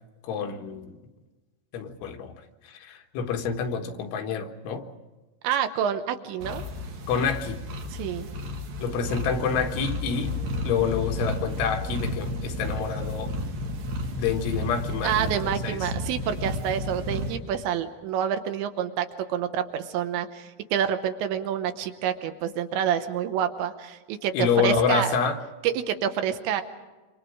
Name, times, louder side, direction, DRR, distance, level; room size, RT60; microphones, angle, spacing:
voice 1, 0.2-1.0 1.7-2.4 2.6-4.9 7.1-7.6 8.8-10.3 10.6-13.3 14.1-15.9 24.3-25.4, left 6 dB, 80° left, 5 dB, 3.8 m, -28 dB
voice 2, 5.4-6.6 7.9-8.3 15.0-25.2 25.6-26.6, right 9 dB, 75° right, 8 dB, 3.2 m, -28 dB
sound 1, 6.4-17.4, left 1 dB, 60° right, 3.3 m, -32 dB
Wind instrument woodwind instrument, 8.8-13.9, left 2 dB, 45° left, 9.4 m, -47 dB
27.5 x 25.5 x 4.9 m, 1.2 s
omnidirectional pair, 5.5 m